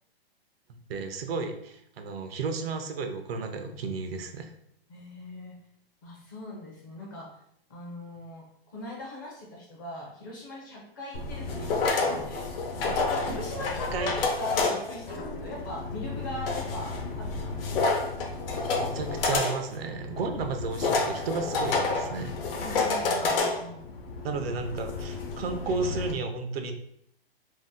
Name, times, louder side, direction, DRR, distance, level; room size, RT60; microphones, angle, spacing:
voice 1, 0.7-4.5 13.9-14.1 18.8-22.3 24.2-26.7, right 4 dB, 70° right, 7 dB, 0.5 m, -33 dB
voice 2, 4.9-5.5 6.0-7.3 7.7-14.1 14.4-17.9 22.6-23.9, left 1 dB, 20° left, -3 dB, 0.4 m, -40 dB
sound 1, 11.1-26.1, left 3 dB, 65° left, 0.7 m, -30 dB
2.7 x 2.0 x 3.6 m, 0.72 s
hypercardioid pair, 160°, 31 cm